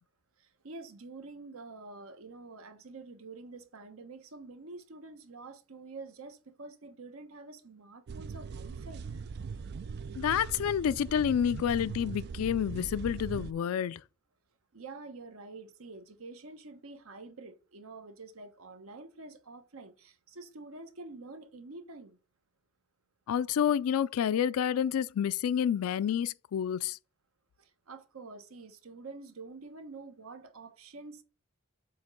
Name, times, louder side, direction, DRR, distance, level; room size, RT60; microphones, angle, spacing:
voice 1, 0.4-9.2 14.7-22.2 27.6-31.2, right 3 dB, 80° right, 1.0 m, -47 dB
sound 1, 8.1-13.5, right 5 dB, 50° right, 0.4 m, -40 dB
voice 2, 10.2-14.0 23.3-27.0, left 8 dB, 85° left, 0.3 m, -29 dB
7.7 x 2.9 x 5.3 m
head